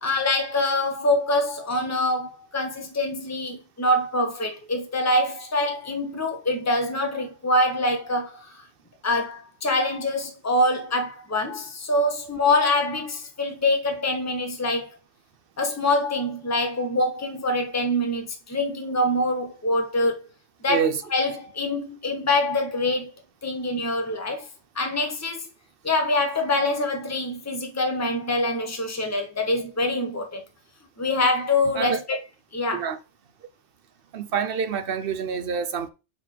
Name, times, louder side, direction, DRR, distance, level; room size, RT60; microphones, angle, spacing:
voice 1, 0.0-8.6 9.0-14.9 15.6-20.3 20.6-23.1 23.4-24.5 24.7-25.5 25.8-30.4 31.0-32.2 32.5-32.9, left 1 dB, 15° left, 1.1 m, -25 dB
voice 2, 20.7-21.0 31.7-32.0 32.7-33.0 34.1-35.9, right 7 dB, 55° right, 0.9 m, -27 dB
6.8 x 4.2 x 4.5 m
omnidirectional pair, 1.2 m